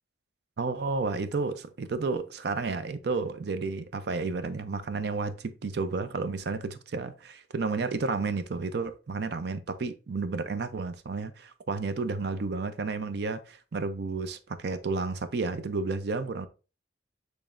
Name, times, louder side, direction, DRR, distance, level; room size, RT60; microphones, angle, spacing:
voice 1, 0.6-16.5, right 4 dB, 60° right, 0.5 m, -31 dB
6.8 x 3.2 x 2.5 m
head